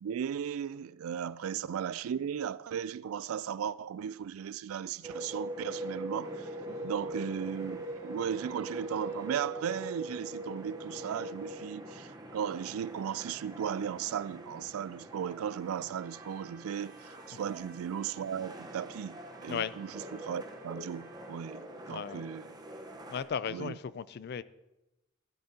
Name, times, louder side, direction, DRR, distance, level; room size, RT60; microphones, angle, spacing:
voice 1, 0.0-6.5 6.8-22.5 23.5-23.8, right 8 dB, 90° right, 0.3 m, -36 dB
sound 1, 5.0-23.2, right 1 dB, 20° right, 0.9 m, -43 dB
Singing, 5.9-11.1, right 4 dB, 75° right, 0.8 m, -53 dB
Trumpet, 15.9-21.4, right 5 dB, 45° right, 1.1 m, -59 dB
voice 2, 21.9-22.3 23.1-24.4, left 7 dB, 50° left, 0.4 m, -36 dB
14.0 x 12.0 x 2.8 m
head